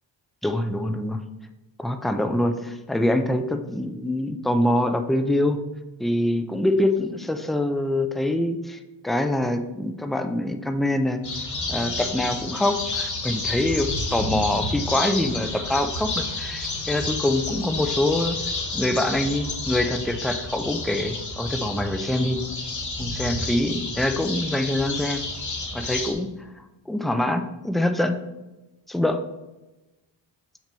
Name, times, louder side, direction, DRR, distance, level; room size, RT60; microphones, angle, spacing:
voice 1, 0.4-1.2 1.8-5.6 6.0-11.2 11.7-18.4 18.7-22.4 23.0-25.2 25.7-26.3 26.9-28.2 28.9-29.2, left 1 dB, ahead, 7 dB, 0.3 m, -25 dB
sound 1, 11.2-26.1, left 2 dB, 40° left, 1.4 m, -30 dB
6.0 x 4.3 x 5.2 m, 1.1 s
wide cardioid pair, 140°, 45 cm